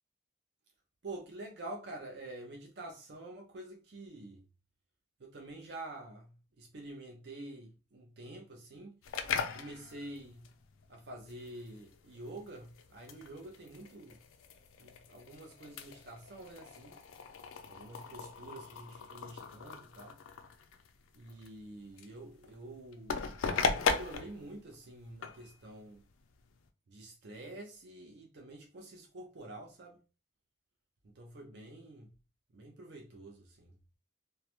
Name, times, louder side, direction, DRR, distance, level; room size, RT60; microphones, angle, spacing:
voice 1, 1.0-4.4 5.2-9.0 9.5-10.5 10.9-14.2 14.8-17.0 17.7-20.2 21.1-26.1 26.9-30.0 31.0-32.1 32.5-33.7, right 2 dB, 55° right, 0.5 m, -48 dB
sound 1, 9.0-26.7, left 5 dB, 85° left, 0.4 m, -39 dB
2.3 x 2.0 x 2.8 m
head